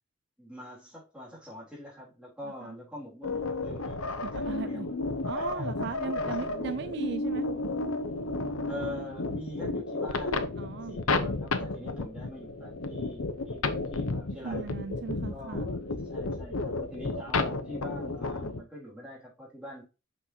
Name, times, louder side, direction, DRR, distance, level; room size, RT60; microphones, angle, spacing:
voice 1, 0.4-4.9 5.3-6.8 8.7-14.7 15.3-19.8, equal, 5° right, 3.6 m, -44 dB
voice 2, 2.4-2.8 4.2-4.9 5.3-7.5 10.6-11.0 14.4-15.7, right 5 dB, 50° right, 0.4 m, -37 dB
sound 1, 3.2-18.6, left 3 dB, 85° left, 0.9 m, -32 dB
6.1 x 6.0 x 2.8 m
head